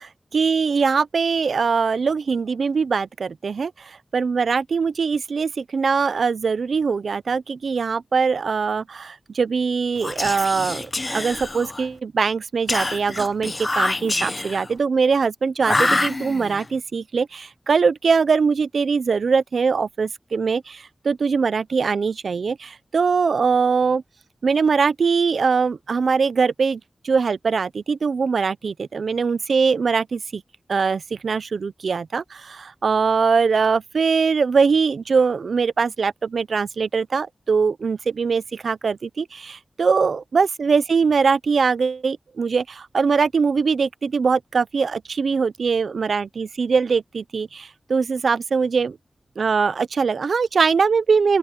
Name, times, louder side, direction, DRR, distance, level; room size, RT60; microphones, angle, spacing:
voice 1, 0.0-24.0 24.4-30.4 30.7-49.0 49.4-51.4, right 5 dB, 90° right, 0.5 m, -22 dB
Whispering, 10.0-11.9 12.7-14.7 15.6-16.7, left 2 dB, 35° left, 0.8 m, -26 dB
open air
wide cardioid pair, 60°, 0 cm